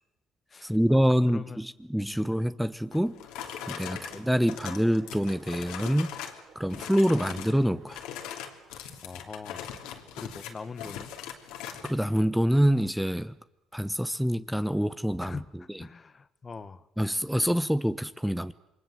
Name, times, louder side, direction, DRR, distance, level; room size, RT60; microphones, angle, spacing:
voice 1, 0.6-3.2 3.7-6.1 6.5-8.0 11.8-13.3 13.7-15.4 15.7-15.8 17.0-18.5, equal, ahead, 13 dB, 1.0 m, -26 dB
voice 2, 1.3-1.6 2.1-2.2 3.8-4.1 9.0-9.7 10.1-11.1 15.2-15.5 15.8-16.9, left 4 dB, 35° left, 14 dB, 1.5 m, -42 dB
sound 1, 2.9-6.4 6.7-7.6 7.9-12.0, left 9 dB, 80° left, 3.1 m, -40 dB
sound 2, 3.3-9.6, right 4 dB, 60° right, 7.4 m, -58 dB
28.0 x 22.0 x 7.8 m, 0.92 s
supercardioid pair, 65°, 0 cm